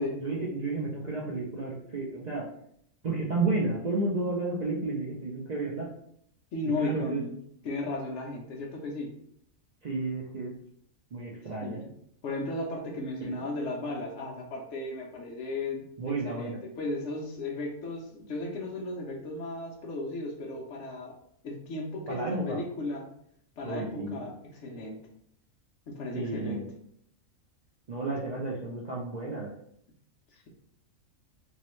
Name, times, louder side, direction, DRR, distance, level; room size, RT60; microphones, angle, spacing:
voice 1, 0.0-2.5 3.0-5.9 6.8-7.2 9.8-10.5 11.1-11.8 13.2-13.3 16.0-16.6 22.1-22.6 23.6-24.2 26.1-26.7 27.9-29.5, right 3 dB, 60° right, -4 dB, 0.4 m, -32 dB
voice 2, 6.5-7.4 7.6-9.2 11.6-11.9 12.2-15.8 16.2-21.1 21.4-23.1 23.6-25.0 25.9-26.6 30.3-30.5, left 2 dB, 65° left, -2 dB, 0.9 m, -35 dB
3.1 x 2.8 x 3.0 m, 0.69 s
omnidirectional pair, 1.4 m